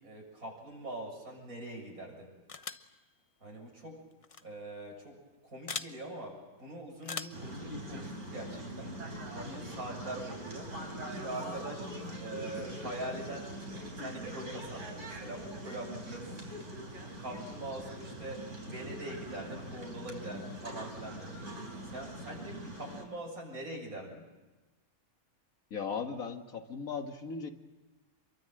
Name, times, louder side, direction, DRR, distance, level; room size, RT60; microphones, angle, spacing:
voice 1, 0.0-2.3 3.4-4.0 4.4-8.9 9.3-10.7 11.0-11.9 12.2-16.7 17.2-21.5 21.8-24.2, right 1 dB, 80° right, 0 dB, 7.7 m, -43 dB
sound 1, 2.5-2.9 4.2-4.4 5.7-5.9 7.0-7.5, left 4 dB, 30° left, 0.8 m, -39 dB
sound 2, 7.3-23.0, right 1 dB, 55° right, 4.5 m, -42 dB
voice 2, 25.7-27.5, left 5 dB, 70° left, 6 dB, 2.2 m, -37 dB
27.5 x 23.5 x 7.8 m, 1.2 s
omnidirectional pair, 1.5 m